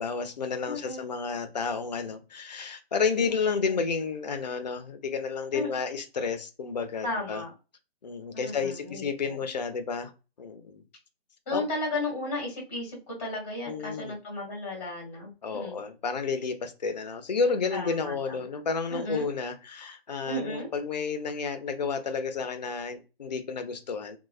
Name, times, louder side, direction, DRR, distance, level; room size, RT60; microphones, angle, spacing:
voice 1, 0.0-7.4 8.0-10.1 10.4-10.8 11.5-11.6 13.7-14.2 15.4-24.2, left 5 dB, 45° left, 0.4 m, -31 dB
voice 2, 0.7-1.1 3.2-3.8 5.5-5.7 7.0-7.5 8.3-9.4 11.5-15.7 17.7-18.4 18.9-19.3 20.2-20.7, left 2 dB, 15° left, 0.7 m, -34 dB
3.1 x 2.1 x 2.3 m
hypercardioid pair, 165°, 31 cm